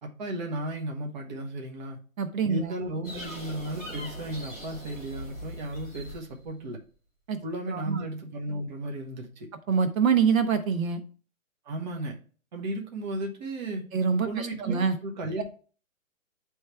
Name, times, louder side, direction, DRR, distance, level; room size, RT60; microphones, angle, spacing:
voice 1, 0.0-2.0 2.5-6.8 7.4-9.5 11.6-12.2 12.5-13.9 14.2-15.4, right 1 dB, 35° right, 0 dB, 1.1 m, -34 dB
voice 2, 2.2-2.7 7.3-7.4 7.7-8.0 9.7-11.0 13.9-15.0 15.4-15.5, right 6 dB, 75° right, 10 dB, 1.0 m, -25 dB
sound 1, 3.0-6.6, left 1 dB, 10° right, 0.6 m, -41 dB
9.4 x 3.2 x 3.3 m, 0.39 s
hypercardioid pair, 165°, 41 cm